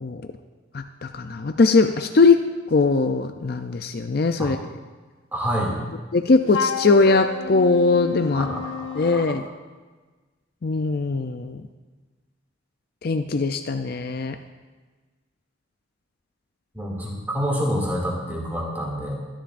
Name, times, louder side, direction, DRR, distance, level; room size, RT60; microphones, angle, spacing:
voice 1, 0.7-4.6 6.1-8.5 8.9-9.4 10.6-11.6 13.0-14.4, left 3 dB, 50° left, 7 dB, 0.5 m, -20 dB
voice 2, 5.3-5.7 8.3-9.4 16.7-19.1, equal, 10° right, -3 dB, 2.4 m, -27 dB
Wind instrument woodwind instrument, 6.5-9.4, left 5 dB, 70° left, 0.9 m, -30 dB
23.0 x 10.5 x 2.6 m, 1.3 s
head